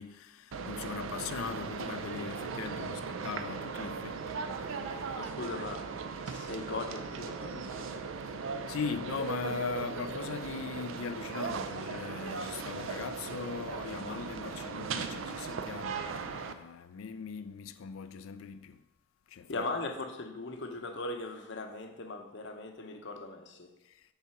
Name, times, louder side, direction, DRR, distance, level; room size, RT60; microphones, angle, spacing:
voice 1, 0.0-5.3 8.3-8.4 8.7-18.8 19.3-19.6 23.8-24.0, left 6 dB, 85° left, 0.4 m, -40 dB
sound 1, 0.5-16.5, right 5 dB, 75° right, 0.5 m, -38 dB
voice 2, 5.1-8.1 19.5-23.7, left 2 dB, 60° left, 0.7 m, -39 dB
5.6 x 3.9 x 5.8 m
head